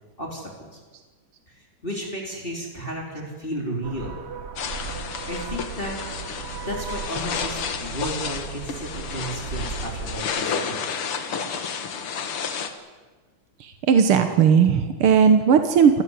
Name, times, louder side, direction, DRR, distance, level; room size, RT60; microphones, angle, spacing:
voice 1, 0.2-0.8 1.5-4.2 5.3-6.0 6.6-11.0, equal, 25° left, -1 dB, 3.9 m, -33 dB
sound 1, 3.8-10.2, right 6 dB, 50° right, 0.8 m, -36 dB
sound 2, 4.6-12.7, left 6 dB, 85° left, 2.5 m, -31 dB
voice 2, 13.6-16.0, right 7 dB, 85° right, 7 dB, 2.2 m, -17 dB
28.5 x 14.0 x 9.7 m, 1.4 s
omnidirectional pair, 2.4 m